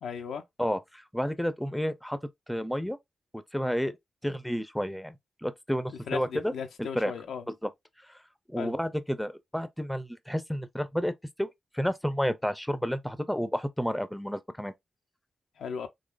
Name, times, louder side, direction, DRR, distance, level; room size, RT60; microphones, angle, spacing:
voice 1, 0.0-0.4 6.1-7.4 8.6-8.7 15.6-15.9, left 6 dB, 90° left, 0.6 m, -36 dB
voice 2, 0.6-2.2 2.5-3.0 3.5-3.9 4.2-5.2 5.4-6.5 6.8-7.1 7.6-7.7 8.1-8.2 8.5-11.1 11.4-11.5 11.7-14.7, equal, 5° left, 0.6 m, -30 dB
3.8 x 2.9 x 2.5 m
cardioid pair, 50°, 0 cm